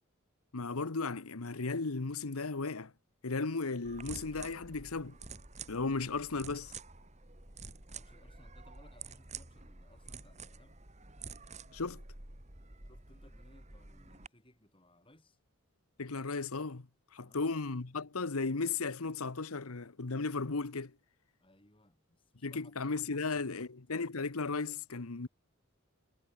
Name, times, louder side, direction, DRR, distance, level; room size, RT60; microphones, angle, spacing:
voice 1, 0.5-2.9 3.2-5.2 5.7-6.7 11.7-12.0 16.0-16.9 17.1-20.9 22.4-25.3, left 3 dB, 85° left, 1.1 m, -35 dB
sound 1, 3.8-14.3, right 4 dB, 30° right, 2.8 m, -49 dB
voice 2, 7.9-10.8 12.8-15.4 17.2-17.5 21.4-22.7 23.1-23.7, left 1 dB, 25° left, 6.3 m, -64 dB
head